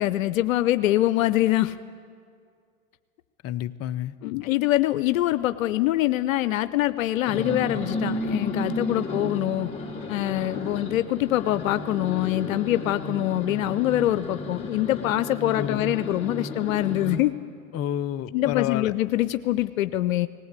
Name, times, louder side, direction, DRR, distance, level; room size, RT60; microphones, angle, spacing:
voice 1, 0.0-1.8 4.2-9.7 10.1-17.3 18.3-20.3, left 14 dB, 80° left, 13 dB, 0.7 m, -24 dB
voice 2, 3.4-4.1 15.6-15.9 17.7-18.9, left 11 dB, 35° left, 12 dB, 0.8 m, -29 dB
sound 1, 7.3-17.2, left 2 dB, 15° left, 3.0 m, -33 dB
19.5 x 18.0 x 8.2 m, 2.2 s
hypercardioid pair, 100°, 40 cm